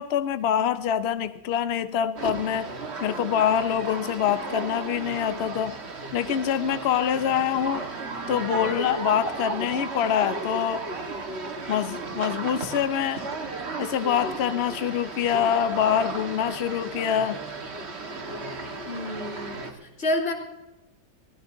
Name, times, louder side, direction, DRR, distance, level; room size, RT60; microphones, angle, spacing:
voice 1, 0.0-2.7 3.0-5.7 6.1-7.8 8.3-10.8 11.7-13.2 13.8-17.4, left 9 dB, 85° left, 11 dB, 0.5 m, -25 dB
sound 1, 2.2-19.7, right 3 dB, 35° right, 1.6 m, -34 dB
voice 2, 18.8-20.3, left 1 dB, 35° left, -1 dB, 2.9 m, -29 dB
23.5 x 16.5 x 2.7 m, 1.0 s
omnidirectional pair, 2.1 m